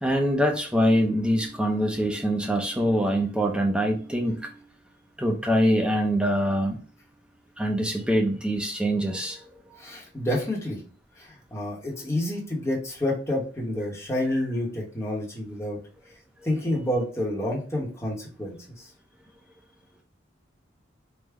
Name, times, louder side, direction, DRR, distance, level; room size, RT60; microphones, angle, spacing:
voice 1, 0.0-4.6 5.2-6.8 7.6-9.8 16.4-16.5, equal, 5° right, 1 dB, 0.4 m, -24 dB
voice 2, 9.8-10.8 11.2-15.8 16.4-18.9, left 1 dB, 15° left, -4 dB, 0.9 m, -29 dB
3.4 x 2.1 x 3.4 m, 0.38 s
head